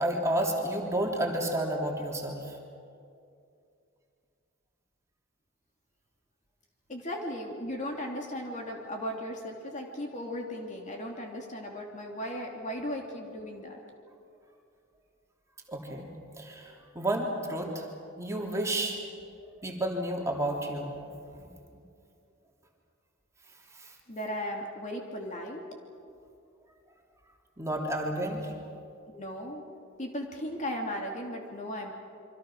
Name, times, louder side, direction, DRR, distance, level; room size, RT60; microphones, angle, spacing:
voice 1, 0.0-2.6 15.7-16.1 16.4-17.9 18.2-19.0 19.6-21.1 21.4-21.5 23.8-23.9 27.6-28.5, right 1 dB, 15° right, -1 dB, 3.2 m, -31 dB
voice 2, 6.9-13.8 24.1-25.6 29.1-29.6 30.0-31.9, equal, 40° left, 1 dB, 3.0 m, -36 dB
27.5 x 24.5 x 6.3 m, 2.5 s
head